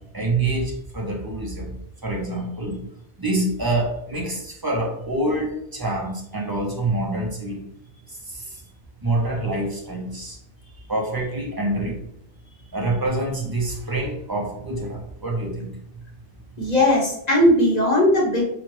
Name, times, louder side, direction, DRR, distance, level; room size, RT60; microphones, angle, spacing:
voice 1, 0.1-1.7 2.0-2.8 3.2-7.6 8.3-8.6 9.0-10.4 10.9-12.0 12.7-15.8, right 2 dB, 20° right, -3 dB, 0.9 m, -26 dB
voice 2, 16.6-18.4, left 1 dB, 35° left, -4 dB, 1.4 m, -18 dB
6.1 x 2.5 x 3.2 m, 0.77 s
omnidirectional pair, 1.3 m